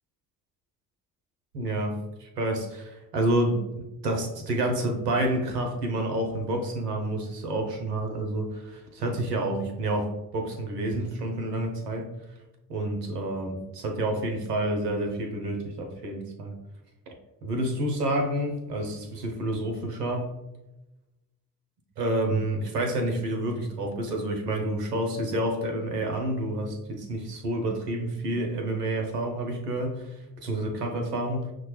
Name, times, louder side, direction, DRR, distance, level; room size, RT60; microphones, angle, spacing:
voice 1, 1.5-12.1 12.7-16.5 17.4-20.3 22.0-30.1 30.4-31.5, right 1 dB, 85° right, 3 dB, 0.7 m, -29 dB
6.0 x 2.2 x 2.9 m, 1.0 s
figure-of-eight pair, 45°, 46 cm